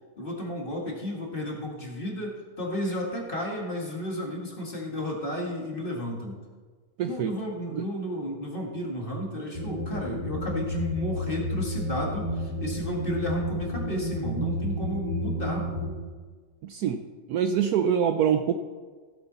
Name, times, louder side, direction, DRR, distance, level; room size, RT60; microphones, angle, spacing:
voice 1, 0.2-6.4 7.0-15.7, equal, 30° left, -1 dB, 2.0 m, -32 dB
voice 2, 7.0-7.3 7.7-7.8 16.6-17.0 17.3-18.5, right 8 dB, 70° right, 7 dB, 1.0 m, -25 dB
sound 1, 9.5-15.9, equal, 25° right, 3.6 m, -31 dB
15.5 x 8.0 x 4.1 m, 1.5 s
omnidirectional pair, 1.9 m